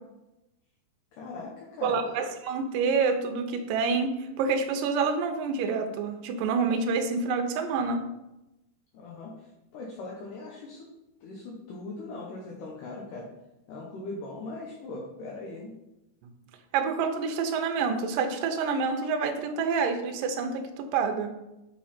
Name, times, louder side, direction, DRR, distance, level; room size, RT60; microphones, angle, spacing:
voice 1, 1.1-2.3 8.9-9.5 9.7-10.9 11.2-13.3 13.7-15.8, left 2 dB, 70° left, -3 dB, 2.2 m, -40 dB
voice 2, 1.8-8.0 16.7-21.3, right 5 dB, 80° right, 5 dB, 2.1 m, -27 dB
7.4 x 3.8 x 4.3 m, 0.93 s
omnidirectional pair, 4.4 m